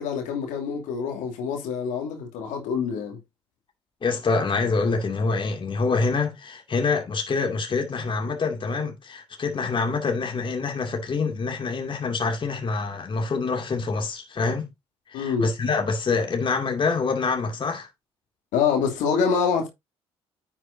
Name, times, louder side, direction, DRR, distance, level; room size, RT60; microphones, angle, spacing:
voice 1, 0.0-3.2 15.1-15.5 18.5-19.7, left 6 dB, 70° left, 2.7 m, -26 dB
voice 2, 4.0-14.7 15.1-17.9, left 4 dB, 40° left, 2.4 m, -26 dB
10.0 x 7.2 x 2.7 m
hypercardioid pair, 55°, 13 cm